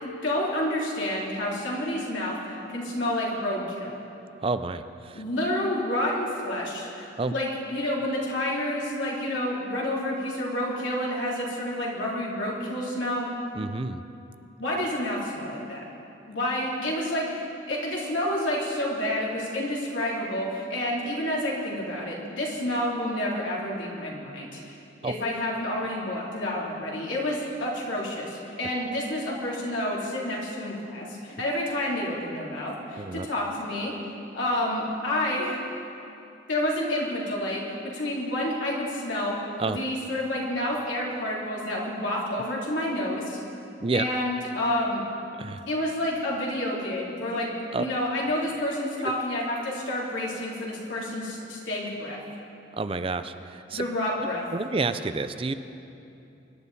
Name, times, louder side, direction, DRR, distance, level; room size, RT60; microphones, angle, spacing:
voice 1, 0.0-3.9 5.1-13.3 14.6-15.8 16.3-24.8 25.0-35.6 36.5-39.4 39.7-43.4 43.9-45.0 45.7-47.5 47.8-52.2 53.7-54.4, left 1 dB, 85° left, -5 dB, 3.4 m, -29 dB
voice 2, 4.4-5.2 7.2-7.3 13.5-14.0 25.0-25.1 33.0-33.3 39.6-39.8 43.8-44.0 45.4-45.7 47.7-47.9 52.8-53.8 54.5-55.5, right 3 dB, 30° right, 11 dB, 0.4 m, -29 dB
24.5 x 11.5 x 4.1 m, 2.8 s
head